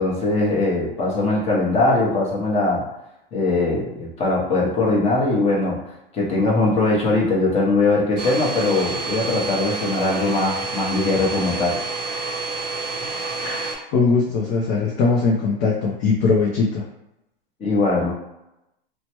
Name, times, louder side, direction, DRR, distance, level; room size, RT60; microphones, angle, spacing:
voice 1, 0.0-2.8 3.3-5.8 6.1-11.8 17.6-18.1, left 2 dB, 20° left, -4 dB, 0.9 m, -21 dB
Domestic sounds home sounds, 8.2-13.8, right 3 dB, 25° right, 0.8 m, -29 dB
voice 2, 13.4-16.9, left 4 dB, 35° left, -2 dB, 0.5 m, -21 dB
2.9 x 2.2 x 2.9 m, 0.89 s
hypercardioid pair, 125°, 29 cm